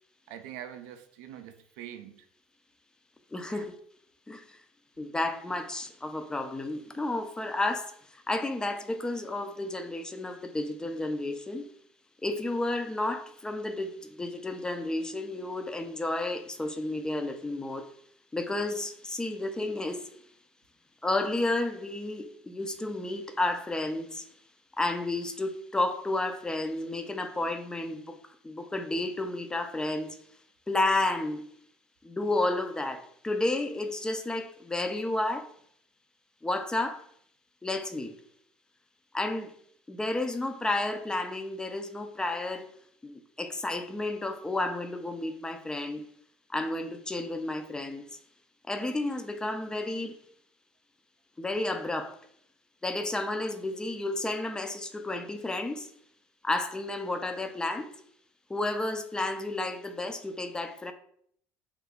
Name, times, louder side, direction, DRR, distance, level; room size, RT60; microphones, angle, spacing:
voice 1, 0.3-2.2 3.5-3.7, right 10 dB, 85° right, 0.3 m, -44 dB
voice 2, 3.3-3.7 4.3-4.6 5.0-11.7 12.2-17.9 18.3-20.1 21.0-24.3 24.8-30.2 30.7-31.4 32.0-35.5 36.4-37.1 37.6-38.2 39.1-39.5 39.9-42.7 43.0-46.0 46.5-48.2 48.7-50.2 51.4-52.2 52.8-55.9 56.4-57.9 58.5-60.9, left 2 dB, 10° left, 0.3 m, -31 dB
2.6 x 2.4 x 3.5 m
supercardioid pair, 110°, 6 cm